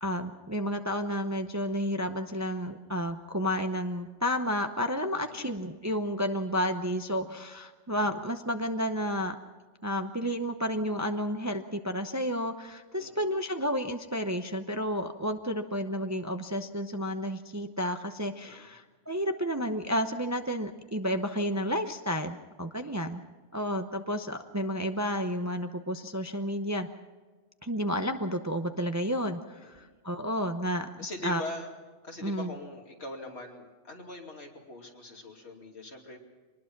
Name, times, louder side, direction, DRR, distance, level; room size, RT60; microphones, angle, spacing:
voice 1, 0.0-9.3 9.8-23.2 23.5-26.9 27.6-30.9 31.2-31.4 32.2-32.5, equal, 15° right, 7 dB, 0.7 m, -31 dB
voice 2, 5.1-5.4 13.0-13.2 18.4-18.7 22.8-23.1 29.6-29.9 31.0-31.7 32.0-36.2, left 2 dB, 65° left, 1 dB, 3.0 m, -42 dB
24.5 x 20.0 x 6.0 m, 1.3 s
omnidirectional pair, 1.2 m